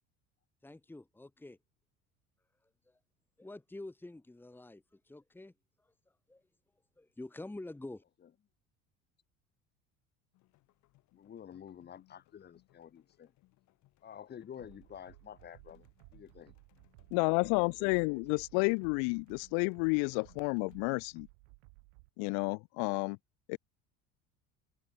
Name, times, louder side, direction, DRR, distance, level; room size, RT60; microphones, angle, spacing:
voice 1, 0.6-1.6 2.9-3.0 3.4-5.5 6.3-6.4 7.0-8.0, left 2 dB, 5° left, 3.2 m, -47 dB
sound 1, 10.3-20.8, left 19 dB, 55° left, 7.9 m, -69 dB
voice 2, 11.1-13.3 14.0-15.9 16.1-16.5 17.6-18.6, left 9 dB, 30° left, 5.7 m, -50 dB
sound 2, 14.6-22.1, right 40 dB or more, 85° right, 6.9 m, -59 dB
voice 3, 17.1-21.3 22.2-23.2 23.5-23.6, left 40 dB or more, 75° left, 0.7 m, -31 dB
cardioid pair, 150°, 33 cm